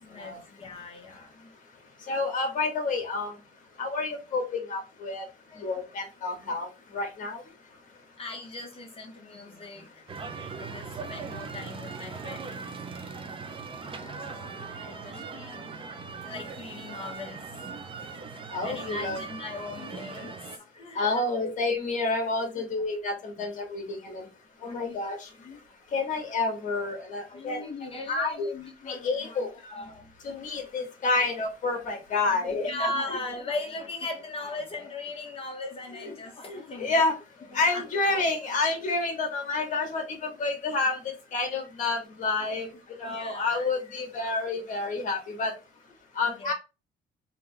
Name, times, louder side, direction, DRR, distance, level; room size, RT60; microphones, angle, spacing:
voice 1, 0.0-1.5 5.5-5.8 8.2-10.0 10.6-12.7 13.8-21.5 22.5-22.7 23.4-23.5 24.6-25.6 27.3-30.1 32.3-37.0 37.5-38.3 43.0-44.0 44.5-44.6 46.2-46.5, left 2 dB, 35° left, 1.0 m, -39 dB
voice 2, 2.1-3.3 3.8-5.3 5.6-7.4 18.5-19.2 20.9-24.3 24.6-25.3 25.9-27.6 28.1-28.5 28.9-29.5 30.2-32.7 36.0-36.1 36.5-37.1 37.5-42.7 43.0-45.5 46.1-46.5, left 3 dB, 50° left, 1.6 m, -29 dB
sound 1, 10.1-20.6, right 5 dB, 30° right, 0.7 m, -40 dB
3.7 x 2.8 x 3.4 m
cardioid pair, 110°, 17 cm